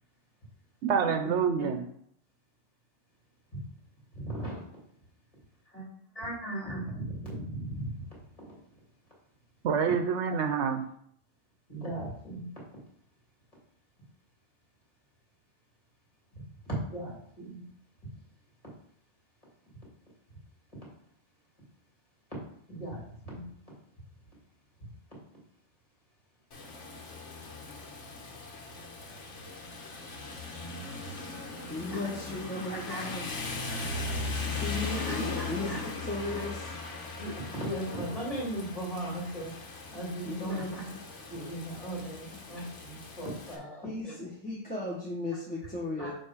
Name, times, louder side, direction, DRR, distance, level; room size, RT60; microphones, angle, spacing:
voice 1, 0.8-1.8 9.6-10.8, right 6 dB, 75° right, 7 dB, 0.9 m, -27 dB
voice 2, 4.1-4.6 5.7-5.8 6.2-8.1 8.4-8.6 11.7-12.5 16.3-17.6 22.7-23.5 31.9-32.0 32.7-33.0 35.1-35.8 37.2-39.5 39.9-40.8 41.3-44.1 46.0-46.1, right 1 dB, 30° left, -6 dB, 2.5 m, -37 dB
Rain, 26.5-43.6, left 3 dB, 85° left, 1.4 m, -39 dB
voice 3, 31.7-33.3 34.6-36.7 40.2-41.0 43.8-46.1, left 2 dB, 10° left, -6 dB, 0.9 m, -36 dB
6.9 x 3.0 x 4.9 m, 0.66 s
omnidirectional pair, 1.2 m